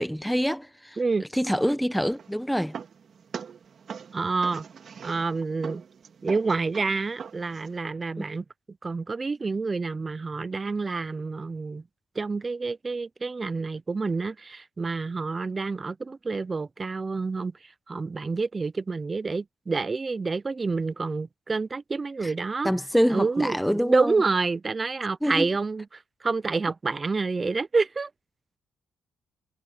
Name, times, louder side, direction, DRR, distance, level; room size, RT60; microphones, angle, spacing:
voice 1, 0.0-1.0 1.3-2.7 8.2-8.3 22.2-22.3 22.6-24.2 25.2-25.5, equal, ahead, 0.9 m, -25 dB
sound 1, 2.0-7.8, right 6 dB, 50° right, 2.2 m, -42 dB
voice 2, 4.1-4.7 5.0-5.8 6.2-8.4 8.8-11.8 12.2-17.5 17.9-22.7 23.1-28.1, right 4 dB, 30° right, 0.6 m, -28 dB
cardioid pair, 90°, 0 cm